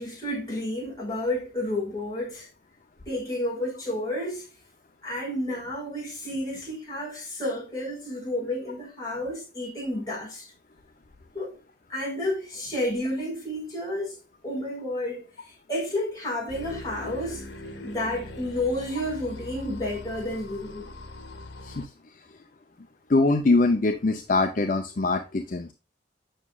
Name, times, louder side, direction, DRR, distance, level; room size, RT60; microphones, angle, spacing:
voice 1, 0.0-2.5 3.1-4.5 5.0-10.5 11.3-11.5 11.9-14.2 14.4-15.2 15.7-17.4 17.8-20.9, left 1 dB, 20° left, 4.6 m, -31 dB
sound 1, 16.5-21.9, left 1 dB, 85° left, 1.2 m, -41 dB
voice 2, 23.1-25.7, left 3 dB, 50° left, 0.6 m, -23 dB
9.0 x 6.1 x 2.4 m
head